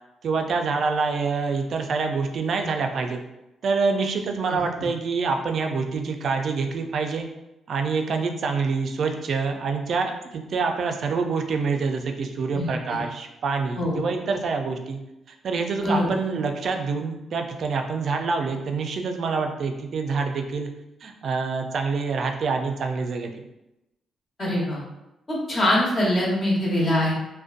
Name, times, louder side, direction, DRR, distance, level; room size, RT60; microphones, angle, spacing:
voice 1, 0.2-3.2 3.6-7.3 7.7-15.0 15.4-20.7 21.0-23.4, right 4 dB, 65° right, 4 dB, 0.3 m, -26 dB
voice 2, 12.5-13.0 13.8-14.0 15.8-16.1 24.4-24.8 25.3-27.1, left 1 dB, 40° left, -5 dB, 1.0 m, -23 dB
2.5 x 2.1 x 2.4 m, 0.92 s
cardioid pair, 75°, 0 cm